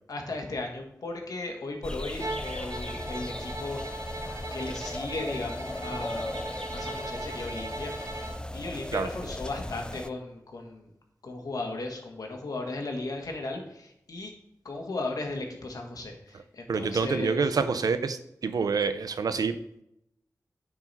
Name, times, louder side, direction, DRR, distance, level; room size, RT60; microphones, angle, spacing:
voice 1, 0.1-3.8 4.5-6.4 6.7-10.9 11.2-14.3 14.6-17.4, left 2 dB, 75° left, 2 dB, 1.5 m, -36 dB
sound 1, 1.8-10.1, left 1 dB, 15° left, 0.4 m, -37 dB
Bowed string instrument, 2.2-8.4, right 2 dB, 60° right, 1.0 m, -39 dB
voice 2, 16.7-19.8, right 5 dB, 80° right, 11 dB, 0.5 m, -27 dB
9.5 x 4.7 x 4.2 m, 0.79 s
wide cardioid pair, 60°, 6 cm